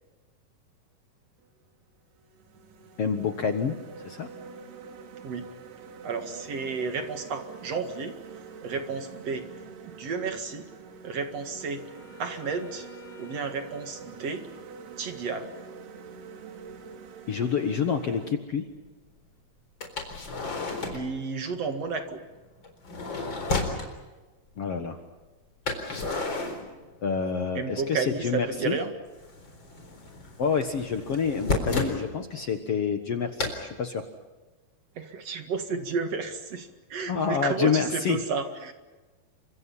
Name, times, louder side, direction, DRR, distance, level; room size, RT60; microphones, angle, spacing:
sound 1, 1.4-1.6 2.1-18.3, right 5 dB, 80° right, 4.4 m, -46 dB
voice 1, 3.0-3.8 4.0-4.3 17.3-18.6 24.6-25.0 27.0-28.8 30.4-34.0 37.1-38.2, left 6 dB, 55° left, 6 dB, 1.7 m, -27 dB
voice 2, 6.0-8.2 8.6-9.5 9.8-10.7 11.0-11.8 12.2-12.9 13.2-14.4 15.0-15.6 20.9-22.2 27.5-28.9 35.0-38.7, right 5 dB, 50° right, 7 dB, 2.5 m, -32 dB
Wind instrument woodwind instrument, 10.7-15.0, left 3 dB, 80° left, 4.9 m, -53 dB
sound 2, 16.7-16.8 17.5-17.6 19.8-21.1 22.6-23.9 25.7-27.3 27.6-28.4 28.7-32.0 33.4-33.6, left 3 dB, 30° left, 4.3 m, -32 dB
29.5 x 25.0 x 5.7 m, 1.2 s
omnidirectional pair, 4.5 m